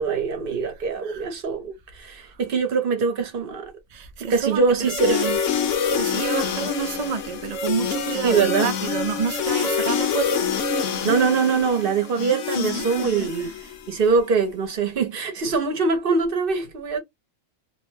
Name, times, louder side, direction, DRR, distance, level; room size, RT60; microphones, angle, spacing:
voice 1, 0.0-3.7 4.2-5.3 8.2-8.7 11.0-17.0, right 5 dB, 50° right, 0.8 m, -23 dB
voice 2, 3.9-5.4 5.7-10.8 12.8-13.5, right 6 dB, 70° right, 0.3 m, -30 dB
sound 1, 4.8-13.9, left 6 dB, 70° left, 1.0 m, -26 dB
2.6 x 2.1 x 3.2 m
omnidirectional pair, 1.4 m